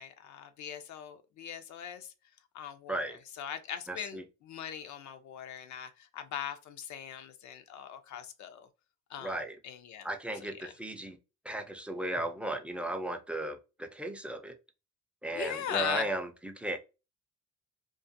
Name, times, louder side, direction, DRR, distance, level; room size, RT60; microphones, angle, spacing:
voice 1, 0.0-2.1 2.5-8.7 9.1-10.1 10.6-10.7 15.3-16.1, left 8 dB, 70° left, 0.5 m, -40 dB
voice 2, 3.9-4.2 9.2-9.6 10.0-11.2 11.5-14.5 15.2-16.8, right 1 dB, 5° right, 0.4 m, -36 dB
2.4 x 2.3 x 2.5 m
cardioid pair, 90°, 30 cm